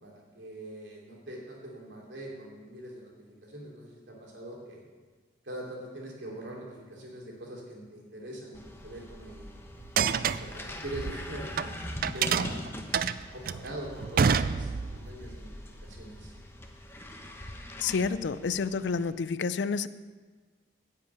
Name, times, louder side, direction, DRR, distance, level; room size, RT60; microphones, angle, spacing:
voice 1, 0.0-3.1 3.4-4.8 5.4-9.5 10.4-11.8 12.1-12.6 13.3-15.5 15.8-16.3, right 1 dB, 80° right, -2 dB, 2.9 m, -42 dB
sound 1, 8.5-19.1, left 1 dB, 15° left, 0.9 m, -43 dB
sound 2, 9.8-11.7 12.0-15.1, right 6 dB, 50° right, 0.3 m, -27 dB
voice 2, 17.8-19.9, left 5 dB, 75° left, 15 dB, 0.4 m, -29 dB
10.0 x 5.8 x 8.7 m, 1.4 s
head